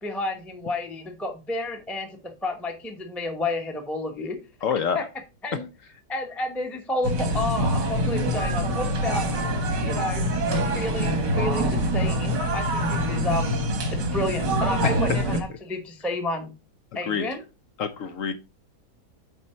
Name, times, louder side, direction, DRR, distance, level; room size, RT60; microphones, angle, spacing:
voice 1, 0.0-4.4 4.9-5.1 5.4-5.6 6.1-9.3 9.8-10.2 10.7-13.6 13.9-16.5 16.9-17.4, left 2 dB, ahead, 3 dB, 0.8 m, -31 dB
voice 2, 4.6-5.0 14.8-14.9 17.1-17.3 17.8-18.3, left 7 dB, 65° left, 8 dB, 0.9 m, -26 dB
sound 1, 7.0-15.4, equal, 90° right, 2.2 m, -25 dB
8.3 x 4.2 x 4.4 m, 0.31 s
omnidirectional pair, 1.8 m